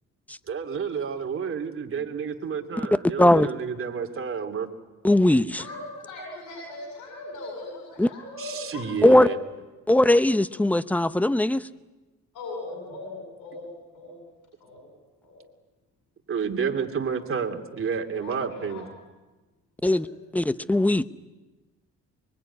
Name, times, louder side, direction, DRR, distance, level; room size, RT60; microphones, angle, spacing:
voice 1, 0.5-4.7 8.4-9.4 16.3-18.9, right 6 dB, 45° right, 4 dB, 2.9 m, -30 dB
voice 2, 5.0-5.6 8.0-8.1 9.0-9.3 9.9-11.6 19.8-20.1 20.3-21.1, left 1 dB, 5° left, 14 dB, 0.9 m, -19 dB
voice 3, 5.6-8.8 9.1-9.6 12.3-14.3 14.6-14.9 15.2-15.4 18.1-18.8 20.0-20.2, left 2 dB, 90° left, -1 dB, 8.0 m, -39 dB
24.0 x 23.0 x 9.9 m, 1.2 s
cardioid pair, 90°, 30 cm